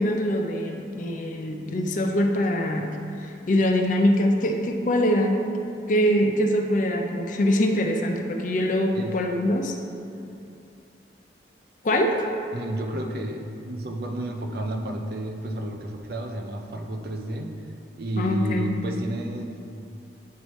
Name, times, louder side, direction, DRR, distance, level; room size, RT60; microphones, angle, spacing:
voice 1, 0.0-2.9 3.5-5.6 5.9-9.8 11.8-12.2 18.2-18.8, equal, 45° left, 3 dB, 0.5 m, -23 dB
voice 2, 12.5-17.5 18.0-19.6, right 1 dB, 55° right, 3 dB, 0.5 m, -31 dB
9.2 x 3.2 x 4.2 m, 2.6 s
head